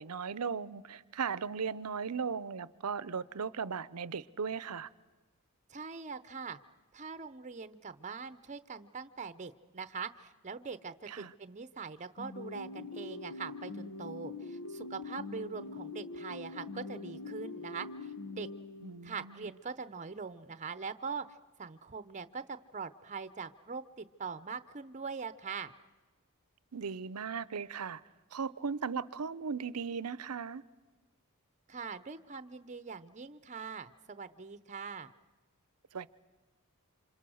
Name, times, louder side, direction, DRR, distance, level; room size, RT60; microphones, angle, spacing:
voice 1, 0.0-4.9 11.1-11.3 18.8-19.5 26.7-28.0 28.3-30.6 35.9-36.1, right 6 dB, 85° right, 0.7 m, -37 dB
voice 2, 5.7-6.6 6.9-18.5 19.0-21.3 21.6-25.7 31.7-35.1, right 5 dB, 35° right, 0.7 m, -42 dB
sound 1, 12.2-19.3, left 3 dB, 80° left, 0.9 m, -43 dB
28.0 x 26.5 x 6.4 m
head